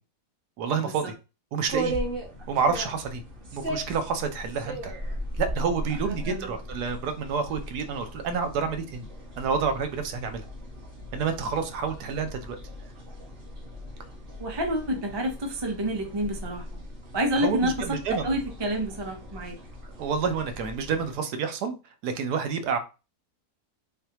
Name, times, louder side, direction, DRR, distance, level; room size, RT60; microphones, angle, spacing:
voice 1, 0.6-1.1 1.5-1.9 2.5-3.2 3.5-4.9 5.4-9.1 9.4-10.4 11.1-12.6 17.4-18.3 20.0-21.8 22.0-22.8, right 5 dB, 85° right, 7 dB, 1.2 m, -28 dB
sound 1, 1.6-21.1, equal, 40° right, 1.0 m, -38 dB
voice 2, 6.2-6.6 14.4-16.6 17.1-17.8 18.1-19.6, equal, 25° right, 2 dB, 0.6 m, -28 dB
3.5 x 3.2 x 2.8 m, 0.30 s
omnidirectional pair, 1.7 m